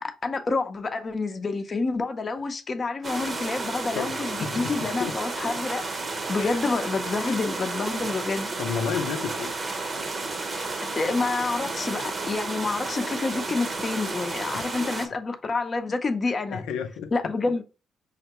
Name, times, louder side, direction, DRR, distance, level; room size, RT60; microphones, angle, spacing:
voice 1, 0.0-5.8 6.3-8.5 11.0-16.6 17.1-17.6, left 3 dB, 40° left, 0.6 m, -28 dB
sound 1, 3.0-15.1, right 3 dB, 40° right, 0.9 m, -32 dB
voice 2, 3.9-5.2 6.4-6.6 7.2-7.4 8.6-9.5 14.5-14.7 16.5-17.3, left 6 dB, 85° left, 0.6 m, -32 dB
5.6 x 2.1 x 2.9 m
supercardioid pair, 65°, 0 cm